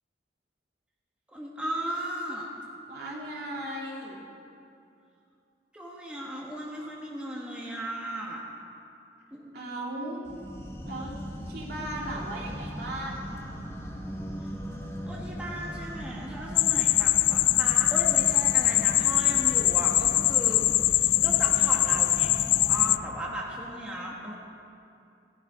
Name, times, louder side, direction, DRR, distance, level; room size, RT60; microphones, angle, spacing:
voice 1, 1.3-2.5 5.7-8.4 9.3-9.6 15.1-20.7 20.9-24.3, equal, 5° right, -4 dB, 1.6 m, -36 dB
voice 2, 2.9-4.2 9.5-10.2 10.8-11.1 11.5-13.3, right 1 dB, 65° right, -3 dB, 2.9 m, -36 dB
sound 1, 10.2-23.0, equal, 15° left, 1.2 m, -38 dB
sound 2, 16.6-23.0, left 16 dB, 90° left, 0.3 m, -23 dB
17.0 x 12.0 x 5.1 m, 2.6 s
head